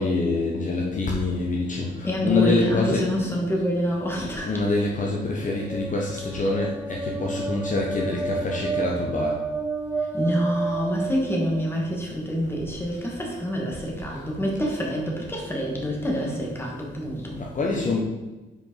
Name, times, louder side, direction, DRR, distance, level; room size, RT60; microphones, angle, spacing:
voice 1, 0.0-3.1 4.4-9.4 13.0-13.1 17.4-18.0, left 3 dB, 40° left, -2 dB, 1.0 m, -25 dB
voice 2, 2.0-4.6 10.1-17.4, equal, 10° left, -2 dB, 1.7 m, -26 dB
sound 1, 5.2-11.9, right 4 dB, 5° right, 0.4 m, -31 dB
5.1 x 4.9 x 4.6 m, 1.1 s
cardioid pair, 90°, 20 cm